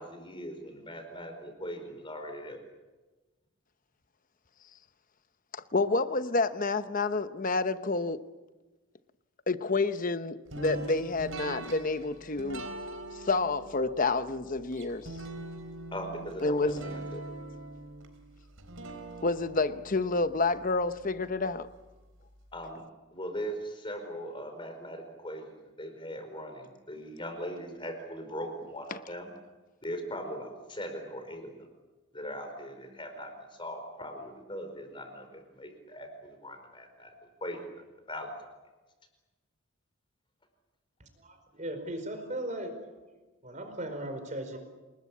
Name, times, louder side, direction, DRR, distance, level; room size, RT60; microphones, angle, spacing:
voice 1, 0.0-2.6 15.9-17.2 22.5-22.8 23.1-29.3 29.8-31.5 32.1-33.3 33.6-37.1 37.4-37.6 38.1-38.3, equal, 25° left, 6 dB, 4.7 m, -40 dB
voice 2, 5.5-8.2 9.5-12.7 13.1-15.2 16.4-16.8 19.2-21.7 28.9-29.0, left 3 dB, 40° left, 12 dB, 0.9 m, -29 dB
sound 1, 10.5-21.5, right 2 dB, 65° right, 4.2 m, -43 dB
voice 3, 41.0-42.8 43.4-44.6, right 1 dB, 35° right, 6 dB, 4.8 m, -37 dB
28.5 x 20.0 x 8.5 m, 1.2 s
head